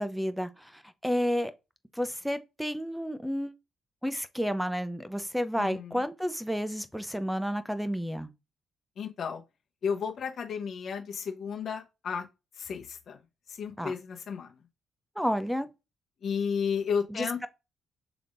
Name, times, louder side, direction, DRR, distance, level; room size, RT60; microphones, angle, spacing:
voice 1, 0.0-1.5 1.9-3.5 4.0-8.3 13.8-13.9 15.2-15.7 17.1-17.5, equal, ahead, 0.6 m, -31 dB
voice 2, 5.6-5.9 9.0-9.4 9.8-12.2 12.6-13.2 13.5-14.5 16.2-17.5, left 6 dB, 55° left, 0.9 m, -33 dB
5.9 x 3.5 x 2.5 m
cardioid pair, 90°, 0 cm